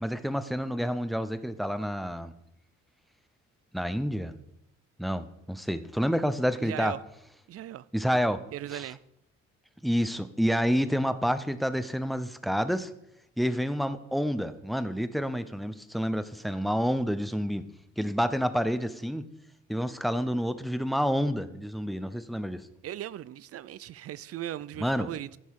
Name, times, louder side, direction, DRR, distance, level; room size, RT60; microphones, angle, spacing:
voice 1, 0.0-2.3 3.7-4.3 5.0-6.9 7.9-8.4 8.7-8.8 9.8-12.9 13.4-17.7 18.0-19.3 19.7-22.6 24.8-25.1, equal, ahead, 12 dB, 0.6 m, -28 dB
voice 2, 6.6-7.0 7.5-7.9 8.5-9.0 22.8-25.4, right 12 dB, 50° right, 20 dB, 0.4 m, -38 dB
14.0 x 5.4 x 4.7 m, 0.80 s
cardioid pair, 90°, 30 cm